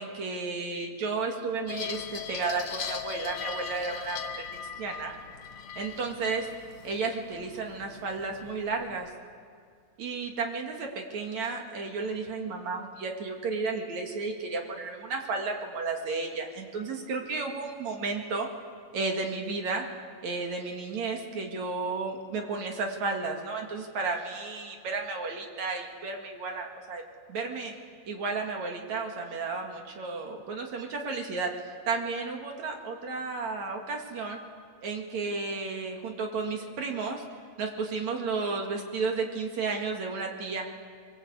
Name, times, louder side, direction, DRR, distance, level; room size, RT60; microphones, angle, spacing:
voice 1, 0.0-4.4 4.8-5.1 5.8-6.5 6.8-9.1 10.0-18.5 18.9-19.8 20.2-27.0 27.3-27.7 28.1-31.5 31.9-34.4 34.8-37.2 37.6-40.7, right 4 dB, 55° right, 2 dB, 3.1 m, -33 dB
sound 1, 1.7-9.1, left 7 dB, 75° left, 1.2 m, -40 dB
25.5 x 23.0 x 8.2 m, 2.2 s
omnidirectional pair, 4.2 m